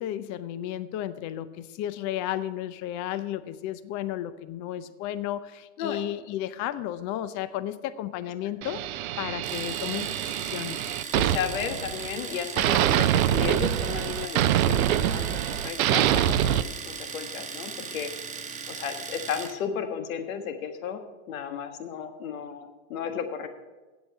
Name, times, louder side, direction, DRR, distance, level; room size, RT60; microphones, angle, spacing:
voice 1, 0.0-10.8, left 12 dB, 45° left, 14 dB, 0.7 m, -33 dB
sound 1, 8.6-12.2 12.6-16.6, right 12 dB, 85° right, 0.6 m, -25 dB
Domestic sounds home sounds, 9.4-19.6, right 5 dB, 15° right, 1.1 m, -38 dB
voice 2, 11.1-18.1 18.7-21.0 21.3-23.5, left 7 dB, 80° left, 7 dB, 1.5 m, -34 dB
8.2 x 7.9 x 7.9 m, 1.2 s
hypercardioid pair, 110°, 41 cm